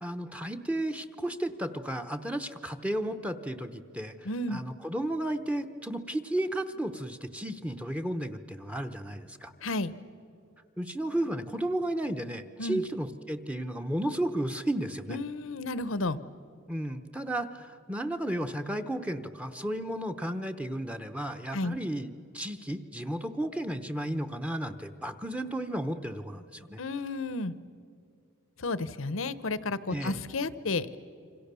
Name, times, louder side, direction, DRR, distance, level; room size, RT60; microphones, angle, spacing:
voice 1, 0.0-9.5 10.8-15.2 16.7-26.8 29.9-30.2, right 1 dB, 5° right, 9 dB, 0.9 m, -33 dB
voice 2, 4.3-4.6 9.6-9.9 12.6-12.8 15.1-16.2 21.5-21.8 26.8-27.5 28.6-31.0, left 2 dB, 75° left, 16 dB, 0.9 m, -32 dB
27.5 x 25.5 x 6.9 m, 2.5 s
head